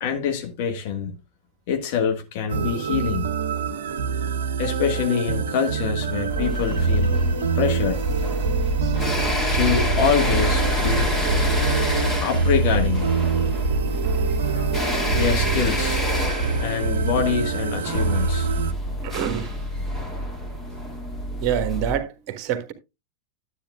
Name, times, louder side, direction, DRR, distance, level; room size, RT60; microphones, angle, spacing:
voice 1, 0.0-1.1 1.7-3.3 4.6-7.2 7.5-8.0 9.5-11.1 12.2-13.1 14.5-14.7 15.1-16.0 16.6-18.5, left 7 dB, 50° left, 1.5 m, -25 dB
sound 1, 2.5-18.7, right 5 dB, 65° right, 0.8 m, -25 dB
sound 2, 6.3-22.0, equal, 15° left, 2.3 m, -27 dB
voice 2, 19.0-19.6 21.4-22.7, right 9 dB, 40° right, 1.4 m, -27 dB
12.0 x 8.2 x 2.4 m
figure-of-eight pair, 90°, 0 cm